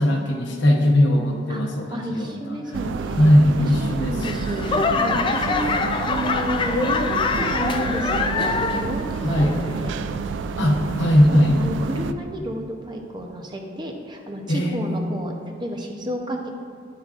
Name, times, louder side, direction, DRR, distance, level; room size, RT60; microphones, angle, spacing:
voice 1, 0.0-2.6 3.2-4.5 9.2-9.6 10.6-11.6 14.5-15.2, left 1 dB, 65° left, 1 dB, 1.0 m, -19 dB
voice 2, 1.5-3.2 3.6-9.9 10.6-10.9 11.3-15.3 15.6-16.5, right 1 dB, 25° right, 2 dB, 0.7 m, -31 dB
sound 1, 2.7-12.1, right 5 dB, 65° right, 0.3 m, -30 dB
Laughter / Clapping / Crowd, 4.2-9.0 9.3-9.9 10.4-10.5, left 4 dB, 25° left, 0.3 m, -24 dB
9.8 x 7.2 x 2.5 m, 2.3 s
head